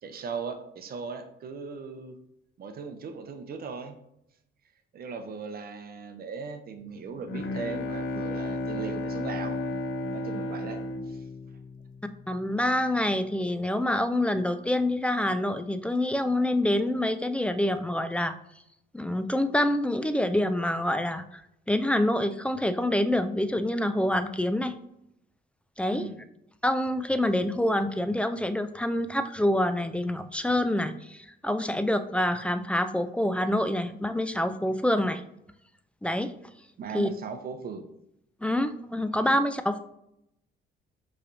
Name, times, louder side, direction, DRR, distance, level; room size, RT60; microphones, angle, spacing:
voice 1, 0.0-2.2 2.6-4.0 4.9-9.6 10.1-11.2 25.9-26.2 36.8-37.9 39.2-39.4, right 5 dB, 50° right, 7 dB, 0.6 m, -38 dB
Bowed string instrument, 6.9-12.4, left 2 dB, 75° left, 0.5 m, -33 dB
voice 2, 12.3-18.3 18.9-21.4 21.7-24.8 25.8-26.1 26.6-35.2 36.0-36.3 36.9-37.1 38.4-39.8, left 1 dB, 5° left, 10 dB, 0.3 m, -26 dB
5.4 x 3.2 x 2.6 m, 0.79 s
cardioid pair, 90°, 20 cm